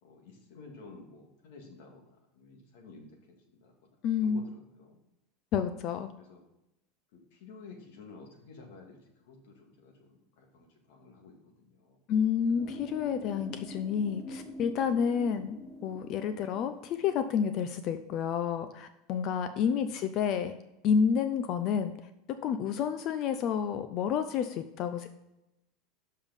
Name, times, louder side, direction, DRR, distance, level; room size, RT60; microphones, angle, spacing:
voice 1, 0.0-5.0 6.2-6.4 7.1-12.0 19.6-19.9 24.9-25.1, left 3 dB, 70° left, 1 dB, 2.2 m, -53 dB
voice 2, 4.0-4.4 5.5-6.1 12.1-20.5 20.8-21.9 22.4-25.1, left 7 dB, 40° left, 10 dB, 0.5 m, -29 dB
sound 1, 12.6-17.5, left 1 dB, 20° left, 1.4 m, -45 dB
7.0 x 5.5 x 5.3 m, 0.89 s
supercardioid pair, 155°, 0 cm